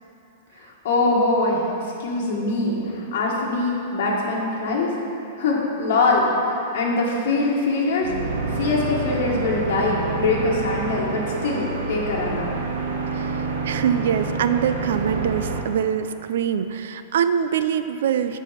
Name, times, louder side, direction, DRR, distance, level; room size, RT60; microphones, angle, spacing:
voice 1, 0.8-1.7 2.0-4.9 5.4-6.2 6.7-8.1 8.5-12.5, left 3 dB, 50° left, -4 dB, 1.7 m, -23 dB
sound 1, 8.0-15.6, right 4 dB, 80° right, 1.1 m, -28 dB
voice 2, 13.1-18.4, right 8 dB, 65° right, 11 dB, 0.4 m, -24 dB
10.5 x 4.7 x 5.7 m, 3.0 s
supercardioid pair, 175°, 0 cm